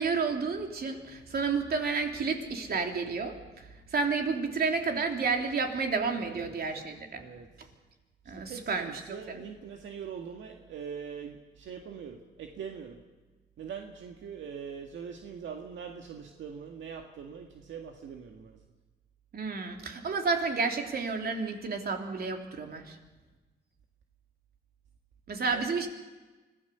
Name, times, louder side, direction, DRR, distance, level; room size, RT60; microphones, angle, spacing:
voice 1, 0.0-3.6 3.9-7.2 8.3-9.4 19.3-23.0 25.3-25.9, right 4 dB, 50° right, 3 dB, 3.3 m, -31 dB
voice 2, 8.5-13.0 13.6-18.5 25.5-25.6, right 7 dB, 70° right, 3 dB, 1.9 m, -42 dB
25.0 x 17.0 x 6.9 m, 1.2 s
cardioid pair, 90°, 20 cm